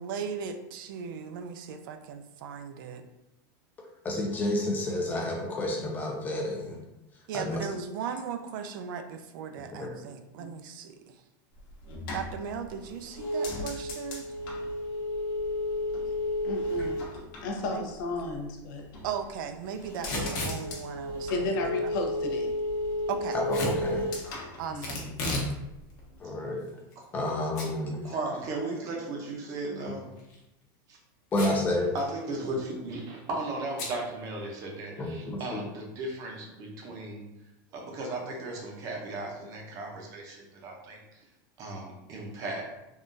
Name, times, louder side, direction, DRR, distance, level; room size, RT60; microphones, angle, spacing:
voice 1, 0.0-3.0 7.3-11.0 12.1-14.3 17.6-17.9 19.0-21.9 23.1-23.4 24.6-25.0, right 7 dB, 70° right, 7 dB, 0.4 m, -37 dB
voice 2, 4.0-6.8 7.3-7.7 9.8-10.0 23.3-24.1 26.2-26.7 27.1-28.0 31.3-32.0 35.0-35.6, left 1 dB, 15° left, 0 dB, 0.3 m, -30 dB
sound 1, 11.6-18.4 18.7-19.4 19.7-25.4 25.7-26.2, left 1 dB, 90° left, 1.0 m, -33 dB
voice 3, 16.4-17.0 17.4-18.8 21.3-22.5 24.7-25.2, left 3 dB, 65° left, 2 dB, 0.6 m, -33 dB
Packing tape duct tape / Tearing, 19.9-20.6 23.5-23.8 24.8-25.5 25.9-26.0 26.7-27.3 27.6-27.7 28.1-28.2 30.1-30.4 31.3-31.7 32.0-32.1 32.3-32.7 33.8-34.0, left 2 dB, 50° left, 0.9 m, -33 dB
voice 4, 28.0-30.0 30.9-31.0 31.9-37.3 37.7-41.0 41.6-42.8, right 2 dB, 30° right, 0 dB, 0.6 m, -36 dB
3.6 x 2.3 x 2.6 m, 0.92 s
supercardioid pair, 175°, 11 cm